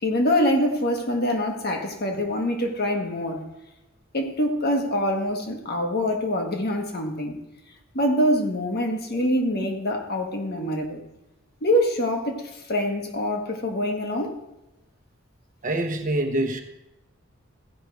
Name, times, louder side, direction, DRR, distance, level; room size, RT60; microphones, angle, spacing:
voice 1, 0.0-3.4 4.1-7.4 7.9-11.0 11.6-14.4, equal, 50° left, 1.4 m, -25 dB
voice 2, 15.6-16.6, right 1 dB, 40° right, 1.1 m, -25 dB
15.5 x 5.5 x 4.7 m
head